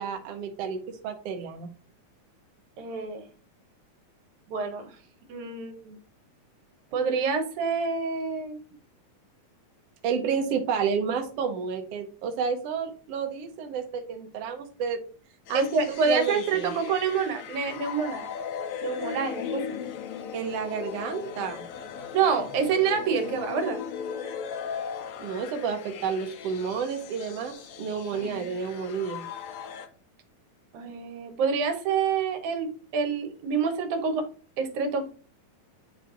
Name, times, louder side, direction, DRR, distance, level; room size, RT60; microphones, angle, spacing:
voice 1, 0.0-1.7 10.0-15.0 15.5-16.8 20.3-21.6 25.2-29.3, right 6 dB, 65° right, 5 dB, 1.8 m, -30 dB
voice 2, 2.8-3.3 4.5-4.9 5.3-6.0 6.9-8.6 15.5-18.3 18.8-19.8 22.1-23.8 28.1-28.5 30.7-34.3 34.6-35.1, right 5 dB, 80° right, 6 dB, 2.5 m, -27 dB
sound 1, 15.5-29.9, left 7 dB, 75° left, 2.0 m, -38 dB
9.3 x 3.2 x 3.8 m, 0.39 s
omnidirectional pair, 3.4 m